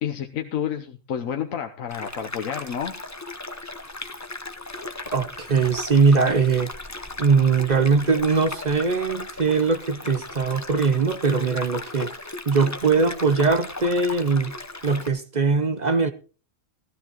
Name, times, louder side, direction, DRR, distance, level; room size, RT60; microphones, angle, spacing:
voice 1, 0.0-3.0, left 9 dB, 75° left, 1.3 m, -30 dB
sound 1, 1.9-15.1, left 2 dB, 15° left, 0.7 m, -37 dB
voice 2, 5.1-6.7 7.2-12.1 12.5-14.5 14.8-16.1, right 4 dB, 40° right, 0.7 m, -21 dB
16.5 x 13.0 x 3.0 m
omnidirectional pair, 1.4 m